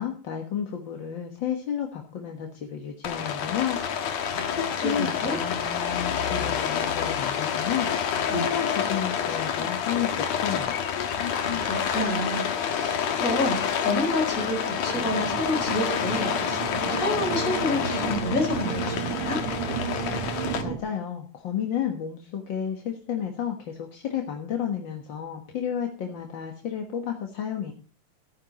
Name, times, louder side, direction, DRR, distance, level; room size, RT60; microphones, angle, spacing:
voice 1, 0.0-3.8 4.5-7.9 8.3-10.8 20.6-27.7, left 9 dB, 50° left, 2 dB, 1.7 m, -31 dB
Rain, 3.0-20.6, left 8 dB, 70° left, 2.6 m, -28 dB
voice 2, 4.3-5.4 8.3-8.5 11.3-19.4, left 1 dB, 25° left, 1 dB, 5.3 m, -29 dB
sound 1, 14.9-20.8, right 8 dB, 60° right, 1.3 m, -33 dB
15.0 x 9.8 x 4.1 m, 0.38 s
omnidirectional pair, 3.4 m